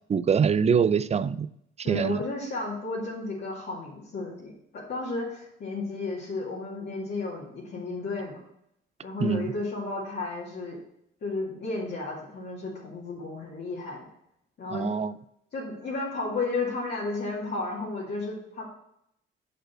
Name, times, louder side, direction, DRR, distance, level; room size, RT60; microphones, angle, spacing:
voice 1, 0.1-1.5 1.9-2.2 9.2-9.5 14.7-15.1, right 6 dB, 35° right, 15 dB, 0.4 m, -24 dB
voice 2, 1.8-8.4 9.0-10.8 11.2-14.1 14.6-14.9 15.5-18.6, left 3 dB, 55° left, -5 dB, 2.3 m, -33 dB
6.4 x 5.3 x 6.2 m, 0.76 s
cardioid pair, 90°, 20 cm